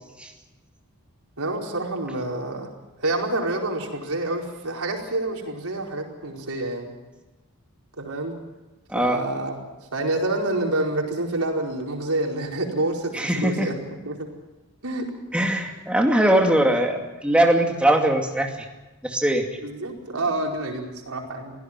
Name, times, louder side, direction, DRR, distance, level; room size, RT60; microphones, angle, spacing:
voice 1, 1.4-2.7 3.0-6.9 8.0-8.3 8.9-9.5 9.9-13.8 14.0-14.3 14.8-15.0 16.5-16.6 19.6-21.5, right 2 dB, 90° right, 0 dB, 4.8 m, -27 dB
voice 2, 8.9-9.2 13.1-13.7 15.3-18.5 19.0-19.4, right 1 dB, 5° right, 2 dB, 2.4 m, -21 dB
24.0 x 17.0 x 7.5 m, 1.1 s
head